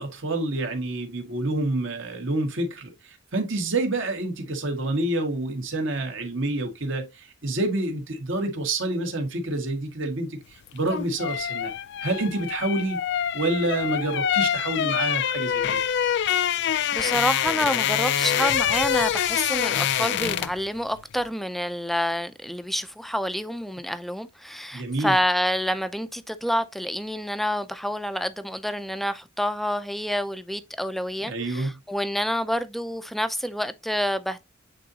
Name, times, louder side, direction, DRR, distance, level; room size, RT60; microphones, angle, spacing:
voice 1, 0.0-11.7 12.0-13.0 13.3-15.8 24.7-25.1 31.2-31.7, right 2 dB, 65° right, 1.8 m, -28 dB
sound 1, 10.7-20.7 20.9-21.2, left 9 dB, 60° left, 0.4 m, -25 dB
voice 2, 16.9-34.4, equal, ahead, 0.5 m, -28 dB
8.5 x 3.9 x 2.8 m
head